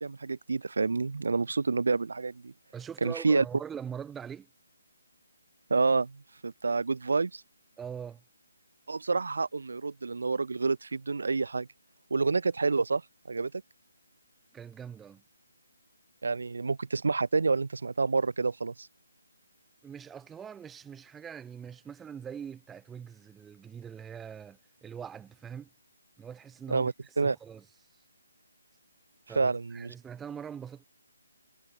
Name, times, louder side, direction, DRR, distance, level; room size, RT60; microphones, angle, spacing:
voice 1, 0.0-2.5 3.0-3.4 5.7-7.4 8.9-11.7 12.1-13.0 13.3-13.5 16.2-18.9 26.7-27.4 29.4-29.9, right 4 dB, 60° right, 0.6 m, -28 dB
voice 2, 2.7-4.5 7.8-8.2 14.5-15.2 19.8-25.7 26.2-26.9 27.2-27.6 29.3-30.9, right 7 dB, 10° right, 0.5 m, -42 dB
figure-of-eight pair, 145°, 0 cm